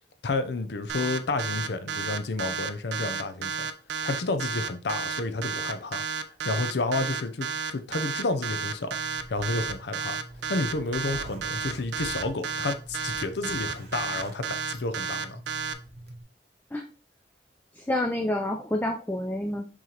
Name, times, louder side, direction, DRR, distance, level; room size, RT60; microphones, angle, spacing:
voice 1, 0.2-3.7 4.0-6.0 6.4-9.0 9.3-10.2 10.5-15.4, left 3 dB, 65° left, 0.6 m, -30 dB
sound 1, 0.9-15.7, right 5 dB, 75° right, 0.4 m, -32 dB
Zipper (clothing), 8.9-16.2, right 1 dB, 55° right, 0.8 m, -45 dB
voice 2, 17.8-19.7, left 1 dB, 10° left, 0.3 m, -28 dB
4.7 x 3.8 x 2.9 m
head